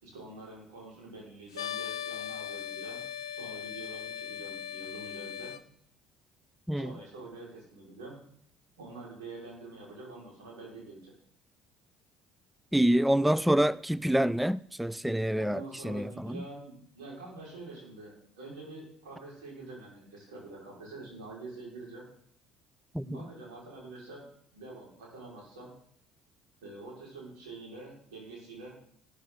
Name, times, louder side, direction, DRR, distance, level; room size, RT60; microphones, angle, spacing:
voice 1, 0.0-3.0 3.3-5.5 6.7-8.2 8.8-11.1 15.4-22.0 23.0-24.3 24.5-25.7 26.6-28.7, right 2 dB, 80° right, 4.3 m, -46 dB
sound 1, 1.5-5.6, left 9 dB, 85° left, 0.5 m, -39 dB
voice 2, 12.7-16.4 22.9-23.2, right 1 dB, ahead, 0.3 m, -27 dB
12.0 x 9.9 x 3.6 m
hypercardioid pair, 60°, 2 cm